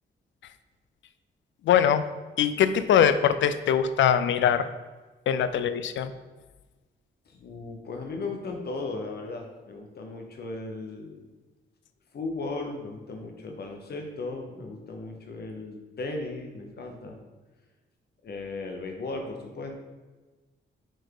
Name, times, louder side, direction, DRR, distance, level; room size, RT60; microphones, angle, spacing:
voice 1, 1.7-2.0 2.4-4.7 5.3-6.1, left 8 dB, 85° left, 12 dB, 0.4 m, -22 dB
voice 2, 7.3-11.3 12.1-17.2 18.2-19.7, left 3 dB, 60° left, 3 dB, 1.0 m, -36 dB
5.0 x 4.4 x 4.6 m, 1.2 s
cardioid pair, 120°, 19 cm